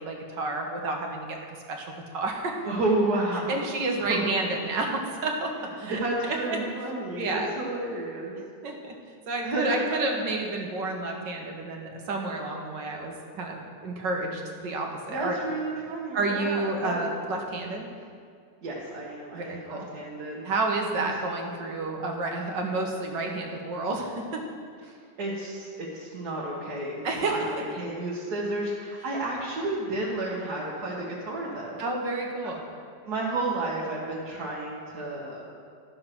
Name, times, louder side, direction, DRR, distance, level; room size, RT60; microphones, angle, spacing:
voice 1, 0.0-1.4 1.7-2.6 3.5-6.6 7.2-7.5 8.6-9.0 9.3-15.4 16.1-17.9 19.3-19.9 20.4-24.4 24.8-24.9 27.0-27.4 31.8-32.6, right 2 dB, 85° right, 1 dB, 1.9 m, -30 dB
voice 2, 2.7-3.6 4.1-4.2 5.8-8.4 9.4-9.8 15.1-17.1 18.6-20.5 21.0-21.1 25.2-27.0 27.3-31.8 33.1-35.5, right 2 dB, 65° right, -7 dB, 1.9 m, -31 dB
12.5 x 6.6 x 5.9 m, 2.2 s
omnidirectional pair, 1.9 m